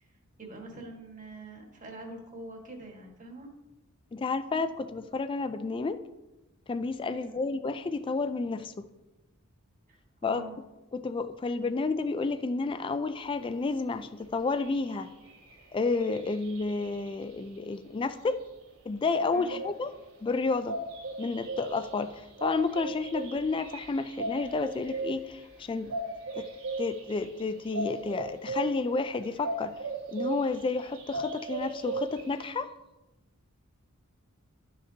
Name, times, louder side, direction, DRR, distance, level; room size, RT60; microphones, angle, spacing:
voice 1, 0.4-3.5 7.0-7.4 9.9-10.5 19.3-19.6, right 2 dB, 40° right, 1 dB, 1.6 m, -45 dB
voice 2, 4.1-6.0 6.7-8.9 10.2-10.4 10.9-15.1 15.7-18.4 18.9-19.9 20.2-20.8 21.2-25.9 26.4-26.5 26.8-29.8 30.1-32.7, left 3 dB, 25° left, 11 dB, 0.3 m, -31 dB
sound 1, 14.2-14.3 14.5-17.6 19.0-32.5, right 2 dB, 85° right, 2.7 m, -38 dB
12.0 x 6.6 x 2.8 m, 1.0 s
head